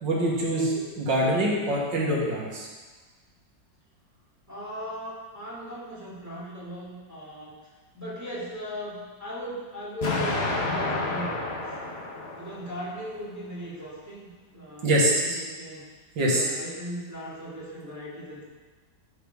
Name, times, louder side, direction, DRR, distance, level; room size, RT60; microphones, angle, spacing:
voice 1, 0.0-2.7 14.8-15.4 16.2-16.5, right 1 dB, 80° right, -4 dB, 2.3 m, -24 dB
voice 2, 4.5-7.5 7.9-11.7 12.3-15.8 16.2-18.5, equal, 10° right, -9 dB, 2.3 m, -38 dB
Explosion, 10.0-13.0, left 2 dB, 40° left, 1.1 m, -30 dB
12.0 x 4.9 x 3.5 m, 1.3 s
omnidirectional pair, 2.0 m